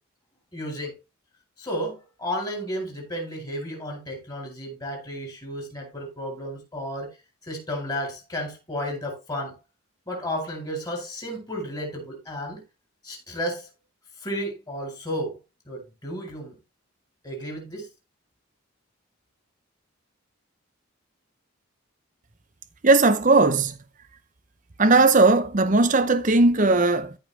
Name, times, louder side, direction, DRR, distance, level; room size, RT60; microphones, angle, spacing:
voice 1, 0.5-0.9 1.6-7.1 7.4-9.6 10.1-12.6 13.0-13.7 14.2-15.4 15.7-16.6 17.2-17.9, equal, 20° left, 4.1 m, -32 dB
voice 2, 22.8-23.8 24.8-27.2, right 3 dB, 40° right, 0.8 m, -18 dB
14.0 x 5.5 x 3.3 m
head